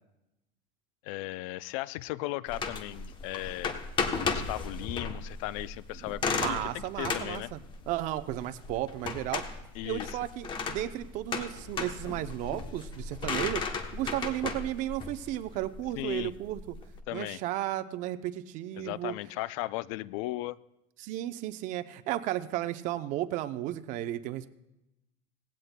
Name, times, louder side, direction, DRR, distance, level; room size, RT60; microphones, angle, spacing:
voice 1, 1.0-3.7 4.1-7.5 9.7-10.2 16.0-16.3 17.1-17.4 18.8-20.6, left 17 dB, 70° left, 19 dB, 0.4 m, -36 dB
sound 1, 2.5-17.0, left 5 dB, 25° left, 0.9 m, -35 dB
voice 2, 6.3-7.6 7.9-9.4 9.8-13.6 13.9-16.6 17.1-19.1 21.0-24.5, right 14 dB, 45° right, 11 dB, 0.6 m, -34 dB
18.0 x 16.0 x 2.2 m, 0.93 s
cardioid pair, 150°, 18 cm